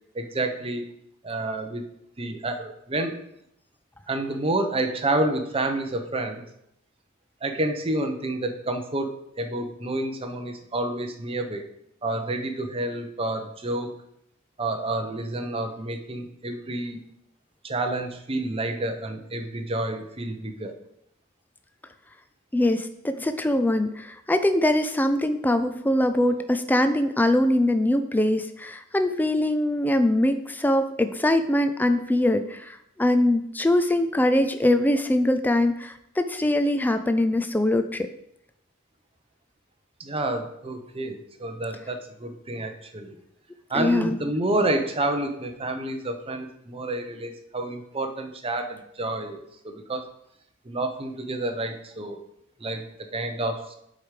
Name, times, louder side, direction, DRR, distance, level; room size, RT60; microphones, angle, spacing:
voice 1, 0.1-0.8 1.2-1.8 2.2-3.1 4.1-6.4 7.4-11.6 12.0-13.9 14.6-17.0 17.6-20.7 40.0-43.2 43.7-50.0 50.6-52.2 52.6-53.7, right 2 dB, 25° right, 5 dB, 0.8 m, -29 dB
voice 2, 22.5-38.1 43.7-44.2, left 1 dB, 10° left, 9 dB, 0.4 m, -22 dB
7.9 x 4.8 x 5.0 m, 0.77 s
head